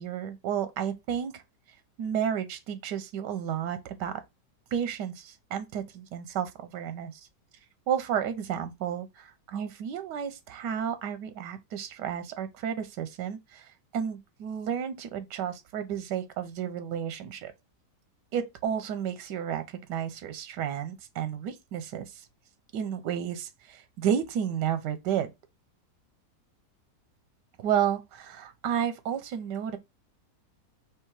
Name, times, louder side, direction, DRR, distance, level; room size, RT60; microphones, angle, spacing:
voice 1, 0.0-1.4 2.0-4.2 4.7-7.2 7.9-17.5 18.3-22.2 22.7-25.3 27.6-29.8, right 9 dB, 90° right, 1.3 m, -32 dB
3.5 x 3.1 x 4.7 m
omnidirectional pair, 1.8 m